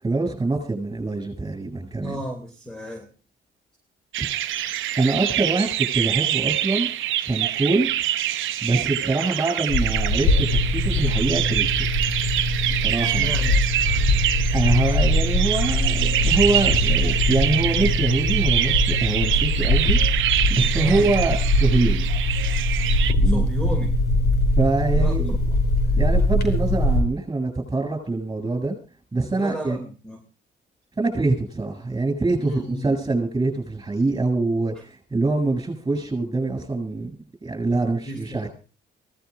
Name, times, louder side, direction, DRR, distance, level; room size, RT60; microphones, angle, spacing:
voice 1, 0.0-2.2 4.2-4.3 5.0-6.9 7.2-7.9 8.6-11.7 12.7-13.4 14.5-20.0 20.5-22.1 23.2-23.4 24.6-25.4 26.0-28.8 29.1-29.8 31.0-37.2 37.4-38.5, right 3 dB, 20° right, 5 dB, 8.0 m, -24 dB
voice 2, 2.0-3.1 13.0-13.6 13.8-14.1 20.7-21.1 23.2-23.9 24.9-25.6 29.3-30.2 32.4-33.0 37.7-38.5, equal, 5° left, 3 dB, 2.5 m, -34 dB
sound 1, 4.1-23.1, right 12 dB, 75° right, 0.8 m, -25 dB
sound 2, 9.7-27.0, left 1 dB, 55° left, 4.9 m, -22 dB
24.5 x 17.5 x 2.5 m, 0.35 s
cardioid pair, 90°, 20 cm